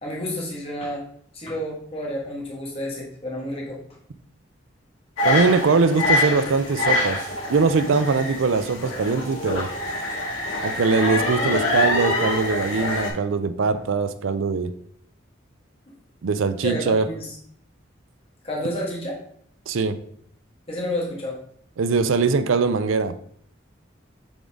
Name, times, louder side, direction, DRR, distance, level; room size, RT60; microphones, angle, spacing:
voice 1, 0.0-1.0 1.3-3.8 16.6-17.4 18.4-19.2 20.7-21.4, left 1 dB, 30° left, -3 dB, 1.6 m, -30 dB
sound 1, 5.2-13.1, left 2 dB, 90° left, 2.0 m, -25 dB
voice 2, 5.2-7.2 7.5-9.7 10.6-14.7 16.2-17.1 19.7-20.0 21.8-23.1, right 4 dB, 80° right, 11 dB, 0.5 m, -21 dB
7.1 x 3.9 x 3.5 m, 0.64 s
head